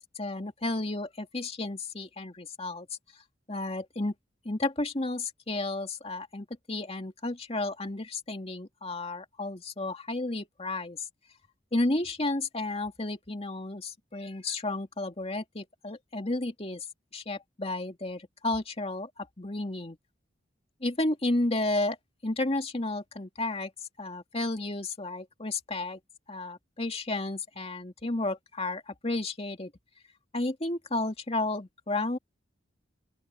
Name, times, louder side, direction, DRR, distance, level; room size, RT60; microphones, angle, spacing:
voice 1, 0.0-2.9 3.5-4.1 4.4-11.0 11.7-16.8 17.1-20.0 20.8-22.0 22.2-23.7 24.0-26.0 26.3-29.7 30.3-32.2, left 2 dB, 35° left, 2.3 m, -32 dB
open air
head